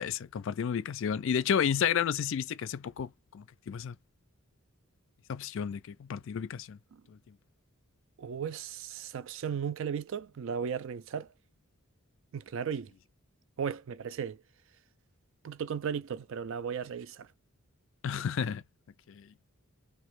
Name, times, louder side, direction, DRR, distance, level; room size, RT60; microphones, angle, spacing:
voice 1, 0.0-4.0 5.3-6.8 7.1-7.2 18.0-18.6 19.1-19.3, left 7 dB, 55° left, 0.3 m, -31 dB
voice 2, 8.2-11.3 12.3-12.9 13.6-14.4 15.4-17.3, right 7 dB, 60° right, 0.4 m, -35 dB
3.0 x 2.5 x 3.0 m
head